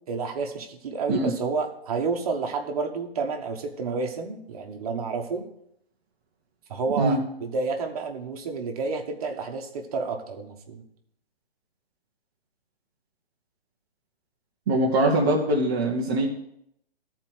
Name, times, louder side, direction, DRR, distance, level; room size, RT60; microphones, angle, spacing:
voice 1, 0.1-5.4 6.7-10.8, right 4 dB, 40° right, 3 dB, 1.3 m, -30 dB
voice 2, 14.7-16.3, right 1 dB, 20° right, -3 dB, 0.7 m, -22 dB
13.5 x 4.6 x 6.1 m, 0.75 s
hypercardioid pair, 165°, 31 cm